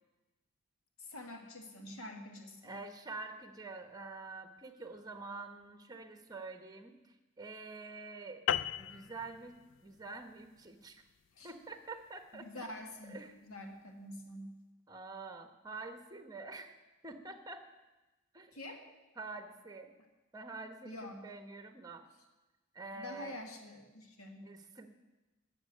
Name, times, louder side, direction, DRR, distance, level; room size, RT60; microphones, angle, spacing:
voice 1, 1.0-2.8 11.4-11.5 12.3-13.1 13.4-14.6 18.5-18.8 20.9-21.3 22.9-24.5, left 1 dB, 80° left, 3 dB, 1.8 m, -47 dB
voice 2, 2.6-6.9 7.4-8.4 8.8-11.0 11.4-12.6 13.0-13.3 14.9-16.7 17.0-17.7 18.3-18.5 19.2-19.9 20.3-22.1 22.7-23.4 24.4-24.9, right 3 dB, 20° right, 7 dB, 1.1 m, -47 dB
sound 1, 8.5-13.2, left 9 dB, 60° left, 0.4 m, -39 dB
12.5 x 7.2 x 9.8 m, 1.1 s
head